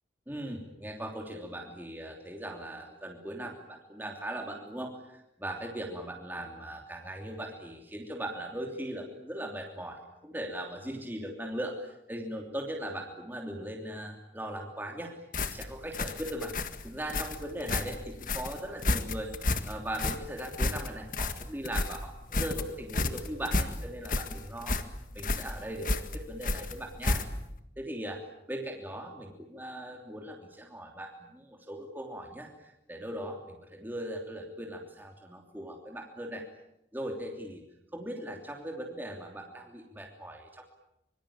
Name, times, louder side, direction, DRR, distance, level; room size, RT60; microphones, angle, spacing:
voice 1, 0.3-15.1 15.5-16.5 16.8-19.3 19.7-24.8 25.1-27.2 27.8-28.2 28.5-36.4 36.9-37.6 37.9-40.6, right 1 dB, 10° right, 1 dB, 3.1 m, -39 dB
sound 1, 15.3-27.6, left 2 dB, 50° left, 1.8 m, -32 dB
25.5 x 24.5 x 8.9 m, 0.83 s
head